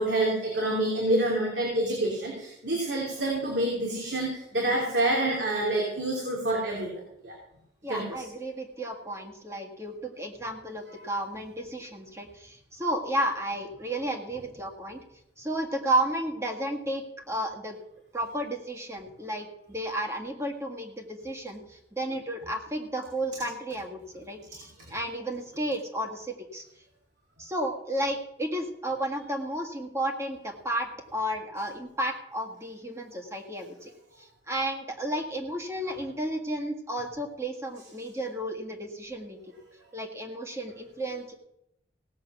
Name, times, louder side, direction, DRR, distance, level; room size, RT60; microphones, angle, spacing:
voice 1, 0.0-7.4 7.9-8.2, right 1 dB, 80° right, -2 dB, 3.0 m, -27 dB
voice 2, 7.8-15.0 15.4-17.8 18.1-26.6 27.4-33.9 34.2-39.4 39.9-41.3, right 1 dB, 15° right, 1 dB, 1.7 m, -32 dB
17.5 x 7.8 x 6.0 m, 0.81 s
head